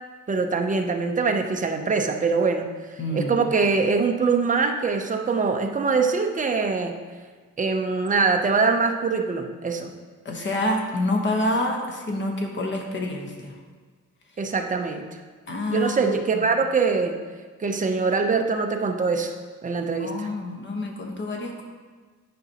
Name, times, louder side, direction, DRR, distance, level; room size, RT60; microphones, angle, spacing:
voice 1, 0.3-2.7 3.1-7.0 7.6-9.9 14.4-15.1 15.7-17.2 17.6-19.3 19.6-20.3, right 4 dB, 25° right, 4 dB, 0.5 m, -23 dB
voice 2, 3.0-3.3 10.2-13.5 15.5-16.5 19.8-21.6, left 1 dB, 35° left, 1 dB, 1.0 m, -27 dB
11.0 x 4.9 x 2.8 m, 1.5 s
wide cardioid pair, 160°, 32 cm